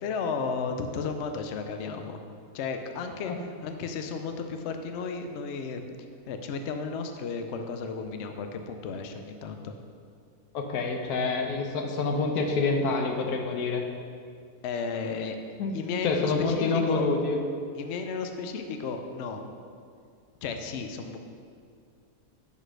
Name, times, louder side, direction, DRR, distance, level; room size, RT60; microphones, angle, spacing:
voice 1, 0.0-2.2 2.5-5.8 6.3-9.7 14.6-15.4 15.7-17.1 17.8-19.5 20.4-21.2, left 5 dB, 60° left, 6 dB, 0.7 m, -33 dB
voice 2, 10.5-13.8 15.6-15.7 16.0-17.4, left 4 dB, 85° left, 3 dB, 1.3 m, -27 dB
6.2 x 5.4 x 6.3 m, 2.3 s
omnidirectional pair, 1.6 m